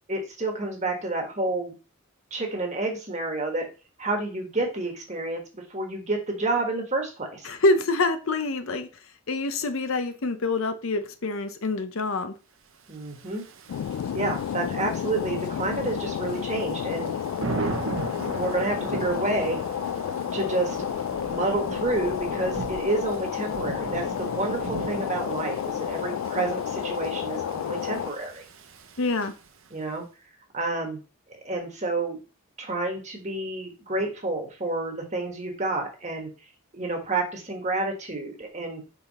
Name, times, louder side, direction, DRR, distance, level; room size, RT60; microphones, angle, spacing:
voice 1, 0.1-1.7 2.3-3.7 4.0-7.5 12.9-13.4 14.1-17.1 18.3-19.6 20.3-20.8 21.3-28.4 29.7-30.0 30.5-31.0 31.4-32.2 32.6-36.3 36.7-38.8, right 2 dB, 30° right, 1.4 m, -29 dB
voice 2, 7.4-8.9 9.3-12.3 29.0-29.3, left 2 dB, 65° left, 0.7 m, -26 dB
Thunder / Rain, 13.1-29.7, right 3 dB, 65° right, 0.8 m, -38 dB
sound 1, 13.7-28.1, left 9 dB, 80° left, 0.3 m, -31 dB
5.6 x 4.1 x 4.1 m
head